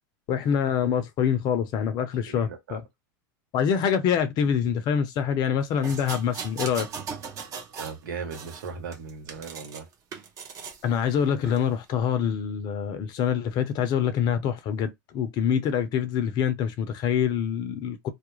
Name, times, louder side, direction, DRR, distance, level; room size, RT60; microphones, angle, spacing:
voice 1, 0.3-2.8 3.5-6.9 10.8-18.1, left 8 dB, 40° left, 0.6 m, -25 dB
voice 2, 2.3-2.8 7.8-9.9, right 5 dB, 85° right, 0.9 m, -37 dB
sound 1, 5.8-8.0 8.3-9.8 10.1-10.8 11.4-11.6, right 6 dB, 30° right, 0.6 m, -38 dB
2.4 x 2.1 x 3.0 m
supercardioid pair, 135°, 11 cm